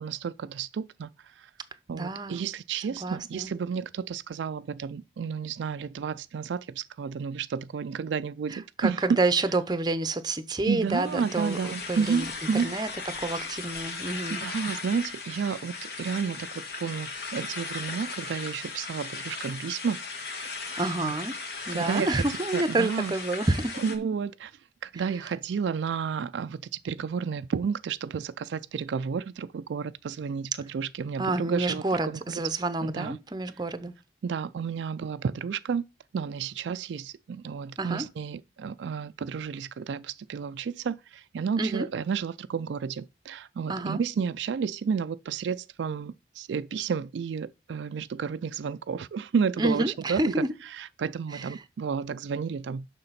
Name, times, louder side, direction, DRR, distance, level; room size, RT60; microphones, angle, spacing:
voice 1, 0.0-1.5 1.9-9.2 10.7-12.7 14.4-20.0 21.0-21.1 21.7-22.2 22.5-23.1 23.8-32.2 32.8-33.2 34.2-35.8 36.1-50.4 50.7-52.9, right 6 dB, 80° right, 0.3 m, -31 dB
voice 2, 1.9-2.4 2.9-3.5 8.5-12.3 12.6-12.9 13.2-14.4 20.7-21.3 21.7-23.8 31.2-33.9 37.8-38.1 41.6-41.9 43.7-44.0 49.6-50.5 51.3-51.5, right 2 dB, 25° right, 0.7 m, -29 dB
sound 1, 10.9-24.0, left 4 dB, 60° left, 1.6 m, -37 dB
6.7 x 6.0 x 5.7 m
head